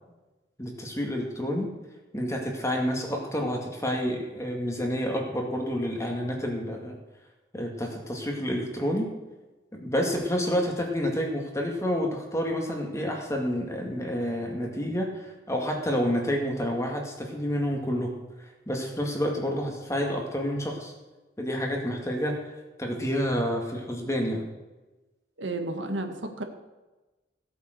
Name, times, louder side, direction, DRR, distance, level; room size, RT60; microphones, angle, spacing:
voice 1, 0.6-1.7 2.1-7.0 7.5-9.1 9.7-20.9 21.4-22.4 22.8-24.4, equal, 15° left, 1 dB, 2.1 m, -29 dB
voice 2, 25.4-26.4, right 2 dB, 90° right, 5 dB, 1.7 m, -32 dB
16.5 x 8.3 x 6.7 m, 1.1 s
head